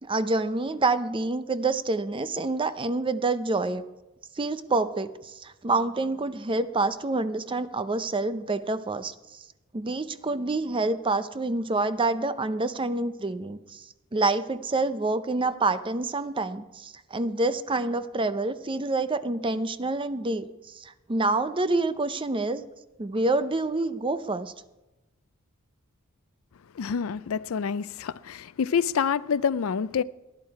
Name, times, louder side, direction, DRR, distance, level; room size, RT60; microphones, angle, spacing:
voice 1, 0.0-3.8 4.4-9.1 9.7-13.8 14.1-20.5 20.7-22.6 23.0-24.5, right 2 dB, 25° right, 0.6 m, -27 dB
voice 2, 26.7-30.0, left 6 dB, 65° left, 0.4 m, -27 dB
18.5 x 11.5 x 4.7 m
head